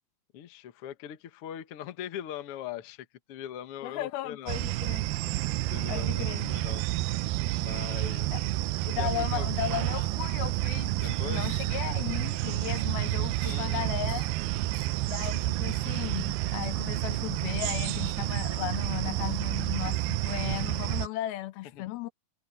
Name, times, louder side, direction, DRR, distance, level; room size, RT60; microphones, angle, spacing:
voice 1, 0.3-4.6 5.7-6.8 7.6-8.5 8.9-9.5 9.9-10.1 11.0-11.5 13.4-13.9 21.7-21.8, left 10 dB, 60° left, 1.5 m, -41 dB
voice 2, 3.8-5.1 5.9-6.6 8.3-8.4 8.8-14.3 15.1-22.1, left 14 dB, 85° left, 2.8 m, -36 dB
sound 1, 4.5-21.1, right 17 dB, 85° right, 2.4 m, -30 dB
sound 2, 11.2-11.9 12.7-13.1 13.4-13.7 14.1-14.3 14.7-14.9 15.2-15.4 15.7-15.8 16.1-16.3 16.6-16.7, right 6 dB, 45° right, 3.9 m, -50 dB
omnidirectional pair, 4.3 m